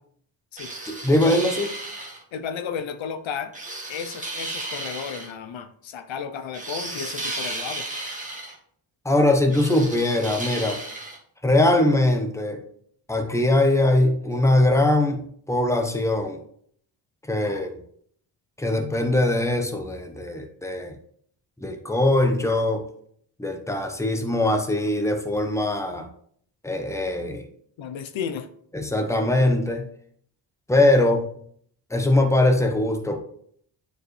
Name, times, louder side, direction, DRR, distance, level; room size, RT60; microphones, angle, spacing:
sound 1, 0.6-2.2 3.5-5.3 6.5-8.5 9.5-11.2, right 2 dB, 15° right, 1.7 m, -34 dB
voice 1, 0.9-1.7 9.0-10.8 11.4-12.6 13.1-16.4 17.3-17.8 18.6-21.0 21.6-22.8 23.4-26.1 26.6-27.5 28.7-29.9 30.7-31.3 31.9-33.2, left 1 dB, 5° left, 5 dB, 1.1 m, -21 dB
voice 2, 2.3-3.5 3.9-7.9 27.8-28.5, left 7 dB, 75° left, 9 dB, 0.8 m, -33 dB
9.0 x 4.7 x 3.2 m, 0.63 s
cardioid pair, 80°, 46 cm